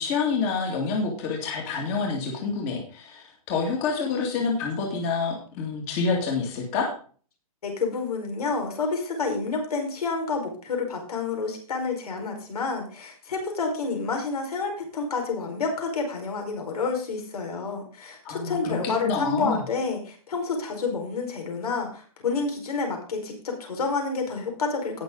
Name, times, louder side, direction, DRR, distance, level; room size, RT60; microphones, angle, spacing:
voice 1, 0.0-6.9 18.2-18.8 19.0-19.6, left 4 dB, 25° left, 0 dB, 2.3 m, -27 dB
voice 2, 7.6-25.0, left 4 dB, 90° left, 3 dB, 5.0 m, -29 dB
18.5 x 6.4 x 3.9 m, 0.42 s
hypercardioid pair, 175°, 19 cm